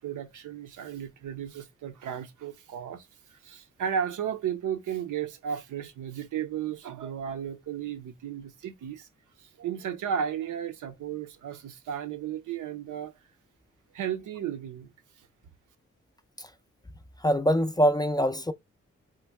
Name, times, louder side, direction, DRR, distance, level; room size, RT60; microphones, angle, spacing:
voice 1, 0.0-9.1 9.4-13.1 13.9-14.9 15.2-15.3, right 8 dB, 75° right, 0.6 m, -34 dB
voice 2, 17.2-18.5, equal, 15° left, 0.4 m, -24 dB
3.1 x 2.2 x 3.4 m
supercardioid pair, 45°, 31 cm